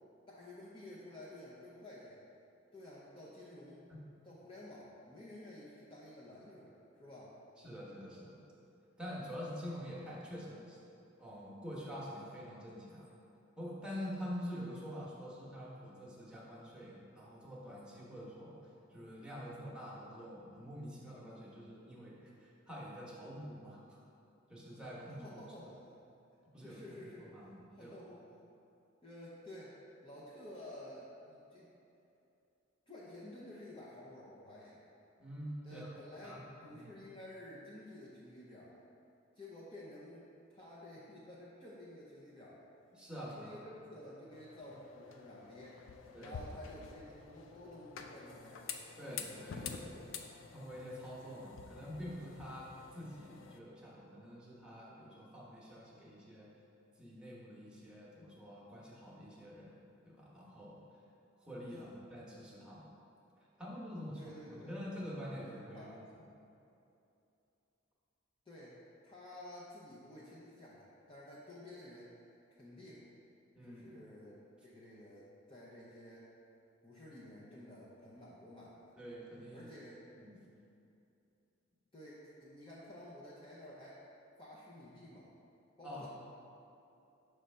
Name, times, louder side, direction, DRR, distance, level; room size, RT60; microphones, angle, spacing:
voice 1, 0.3-2.2 2.7-3.8 4.2-7.4 25.1-25.8 26.6-27.3 27.7-28.2 29.0-29.8 30.0-31.7 32.9-34.8 35.6-38.8 39.3-42.6 43.2-45.8 46.2-48.7 49.5-50.2 61.7-61.9 64.1-64.8 65.4-66.0 68.5-72.1 72.5-73.0 73.6-76.3 76.8-79.0 79.5-80.0 81.9-84.0 84.4-85.3 85.8-86.1, left 1 dB, 25° left, -7 dB, 0.7 m, -52 dB
voice 2, 7.6-8.4 9.0-10.8 11.2-13.1 13.6-24.0 24.5-25.2 26.5-27.9 35.2-35.9 36.2-36.4 36.7-36.9 43.0-43.5 46.1-46.4 49.0-49.9 50.5-56.5 57.0-59.8 60.0-60.8 61.4-62.9 63.6-65.9 73.5-74.0 79.0-79.7 80.1-80.4 85.8-86.1, equal, 5° right, -7 dB, 1.1 m, -46 dB
sound 1, 44.3-53.6, left 6 dB, 80° left, 0.4 m, -49 dB
6.3 x 3.3 x 5.4 m, 2.8 s
head